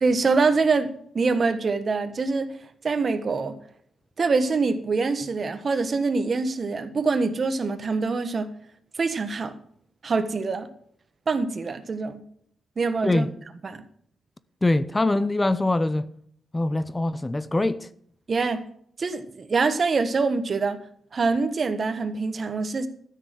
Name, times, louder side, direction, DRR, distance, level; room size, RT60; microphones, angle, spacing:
voice 1, 0.0-2.5 2.8-3.6 4.2-8.5 9.0-9.5 10.0-10.7 11.3-12.2 12.8-13.3 13.6-13.8 18.3-18.6 19.0-20.8 21.1-22.9, right 4 dB, 40° right, 1.4 m, -24 dB
voice 2, 14.6-16.1 16.5-17.9, left 2 dB, 15° left, 0.7 m, -23 dB
13.0 x 6.6 x 7.6 m
cardioid pair, 115°, 0 cm